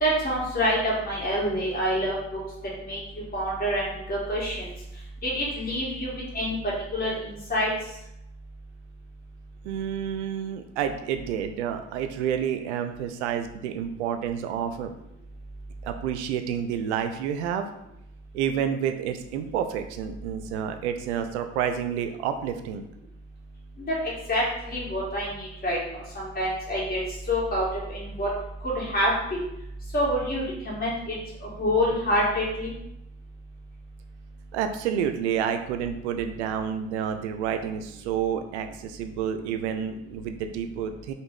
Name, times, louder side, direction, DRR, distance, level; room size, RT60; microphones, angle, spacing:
voice 1, 0.0-2.4 2.8-3.0 3.3-4.7 5.2-6.6 6.9-7.7 23.9-24.0 24.3-25.8 26.1-27.0 27.3-28.3 28.7-29.1 29.9-31.2 31.6-32.7, equal, 25° left, -5 dB, 1.4 m, -26 dB
voice 2, 9.6-14.9 15.8-17.7 18.3-22.8 34.5-41.1, right 8 dB, 70° right, 8 dB, 0.5 m, -29 dB
3.1 x 2.2 x 3.6 m, 0.82 s
figure-of-eight pair, 60°, 35 cm